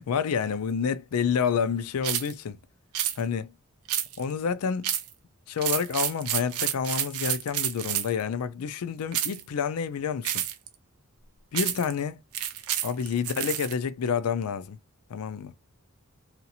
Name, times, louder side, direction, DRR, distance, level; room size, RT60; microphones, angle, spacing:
voice 1, 0.0-2.6 3.2-3.5 4.2-4.9 5.5-10.5 11.5-12.2 12.8-14.8 15.1-15.5, left 6 dB, 90° left, 0.4 m, -29 dB
sound 1, 2.0-2.3 2.9-3.2 3.9-4.3 4.8-5.1 5.6-8.2 9.1-9.4 10.2-10.7 11.5-11.9 12.3-13.7, right 11 dB, 85° right, 0.5 m, -29 dB
2.8 x 2.4 x 2.7 m
head